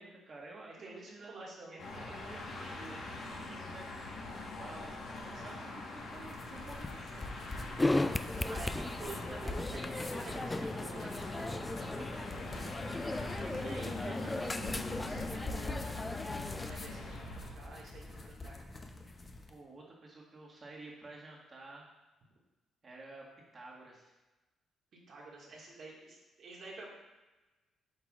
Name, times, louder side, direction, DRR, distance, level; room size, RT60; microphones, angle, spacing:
voice 1, 0.0-5.8 6.1-7.3 19.5-22.0 22.8-23.3 23.5-24.1, right 2 dB, 40° right, -3 dB, 1.8 m, -51 dB
voice 2, 0.7-1.8 5.3-5.7 8.4-10.4 10.7-12.7 13.3-15.9 16.5-18.6 25.1-26.9, right 2 dB, 65° right, -3 dB, 1.9 m, -49 dB
sound 1, 1.8-17.5, left 2 dB, 70° left, 1.3 m, -43 dB
sound 2, 6.1-19.6, left 2 dB, 30° left, 0.7 m, -47 dB
sound 3, 7.8-16.7, left 2 dB, 15° left, 0.3 m, -36 dB
8.1 x 5.6 x 2.5 m, 1.1 s
cardioid pair, 80°, 0 cm